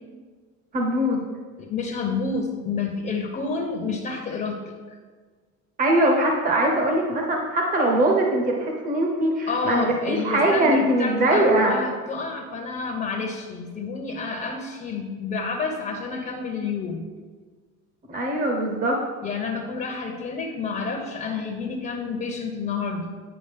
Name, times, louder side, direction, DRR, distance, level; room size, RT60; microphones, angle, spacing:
voice 1, 0.7-1.2 5.8-11.7 18.1-19.0, right 1 dB, 30° right, 0 dB, 0.9 m, -21 dB
voice 2, 1.6-5.0 9.5-17.0 19.2-23.2, left 4 dB, 30° left, 2 dB, 0.8 m, -29 dB
9.8 x 5.0 x 3.5 m, 1.5 s
cardioid pair, 130°, 30 cm